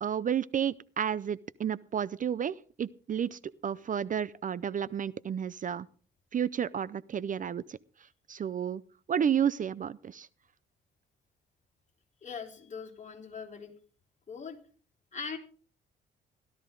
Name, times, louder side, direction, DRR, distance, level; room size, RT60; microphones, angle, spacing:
voice 1, 0.0-5.9 6.3-7.8 8.3-8.8 9.1-10.3, right 8 dB, 40° right, 20 dB, 0.5 m, -31 dB
voice 2, 12.2-13.7 14.3-14.6 15.1-15.4, left 5 dB, 35° left, 2 dB, 4.0 m, -41 dB
16.5 x 13.5 x 3.8 m, 0.41 s
cardioid pair, 90°, 20 cm